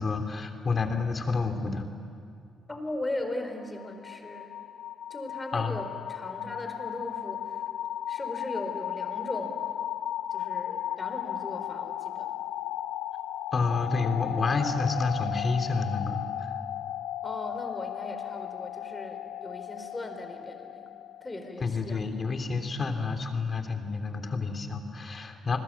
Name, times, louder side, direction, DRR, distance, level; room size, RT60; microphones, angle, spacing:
voice 1, 0.0-1.9 5.5-5.8 13.5-16.5 21.6-25.6, left 4 dB, 40° left, 5 dB, 3.2 m, -29 dB
voice 2, 2.7-4.5 5.1-7.6 8.1-9.8 10.3-12.3 17.2-20.9 21.2-22.0, left 1 dB, 20° left, 6 dB, 4.4 m, -38 dB
sound 1, 3.6-21.5, left 12 dB, 85° left, 0.6 m, -35 dB
29.5 x 21.0 x 8.7 m, 2.3 s
cardioid pair, 85°, 0 cm